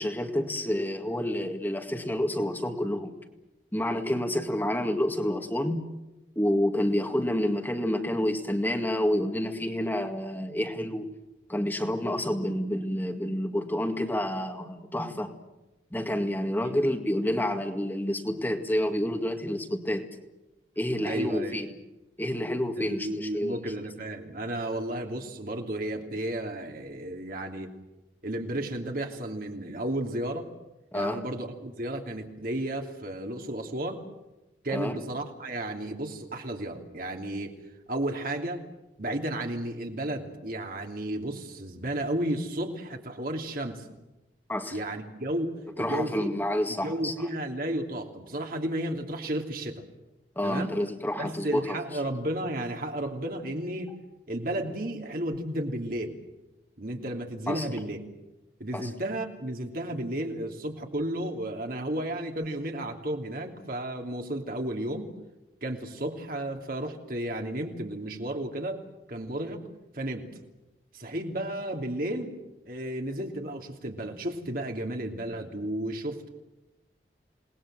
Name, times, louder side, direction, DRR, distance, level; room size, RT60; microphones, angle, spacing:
voice 1, 0.0-3.1 3.7-5.9 6.4-11.1 11.5-15.3 15.9-20.1 20.8-21.7 22.2-23.6 30.9-31.2 34.7-35.0 44.5-44.8 45.8-47.1 50.4-51.8 57.5-57.7 58.7-58.9, left 1 dB, 10° left, 4 dB, 2.0 m, -29 dB
voice 2, 21.0-21.5 22.8-27.7 28.2-30.5 30.9-34.0 34.6-37.5 37.9-38.6 39.0-43.8 44.7-46.3 46.7-49.8 50.4-50.7 51.2-53.9 54.3-56.2 56.8-58.0 58.6-65.1 65.6-68.8 69.1-69.6 69.9-70.3 70.9-72.3 72.7-76.3, right 1 dB, 50° right, 3 dB, 3.0 m, -33 dB
28.0 x 20.0 x 7.7 m, 1.0 s
head